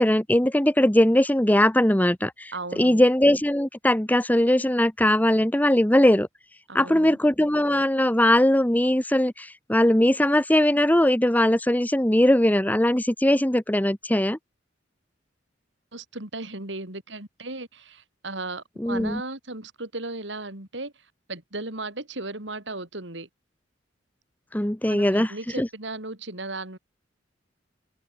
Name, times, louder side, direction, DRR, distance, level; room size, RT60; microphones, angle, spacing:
voice 1, 0.0-6.3 6.7-14.4 18.8-19.2 24.5-25.3 25.6-25.7, left 1 dB, 10° left, 1.1 m, -20 dB
voice 2, 2.5-3.0 6.7-7.1 15.9-23.3 24.9-26.8, right 2 dB, 70° right, 4.6 m, -36 dB
head